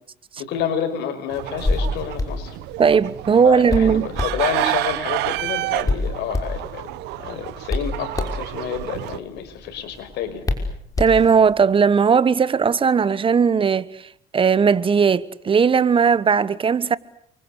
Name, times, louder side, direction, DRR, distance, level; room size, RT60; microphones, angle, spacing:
voice 1, 0.4-2.6 3.4-6.9 7.2-10.5, left 8 dB, 85° left, 5.8 m, -29 dB
sound 1, 1.3-9.2, right 17 dB, 90° right, 1.1 m, -29 dB
Hands, 1.4-11.6, left 2 dB, 20° left, 5.8 m, -29 dB
voice 2, 2.8-4.1 11.0-13.9 14.3-17.0, right 6 dB, 30° right, 1.2 m, -17 dB
29.5 x 24.5 x 8.1 m
cardioid pair, 110°, 17 cm